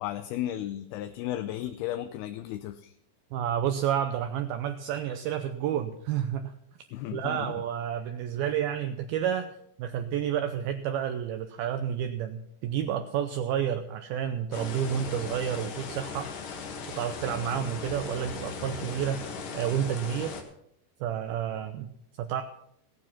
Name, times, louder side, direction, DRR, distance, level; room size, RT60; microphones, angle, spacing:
voice 1, 0.0-2.9 6.9-7.5, left 13 dB, 80° left, 9 dB, 2.5 m, -34 dB
voice 2, 3.3-6.6 7.1-9.5 9.8-16.3 17.0-19.3 19.5-20.4 21.0-22.4, right 9 dB, 75° right, 7 dB, 2.3 m, -30 dB
sound 1, 14.5-20.4, left 5 dB, 60° left, 3.0 m, -38 dB
16.0 x 9.5 x 5.9 m, 0.72 s
omnidirectional pair, 4.9 m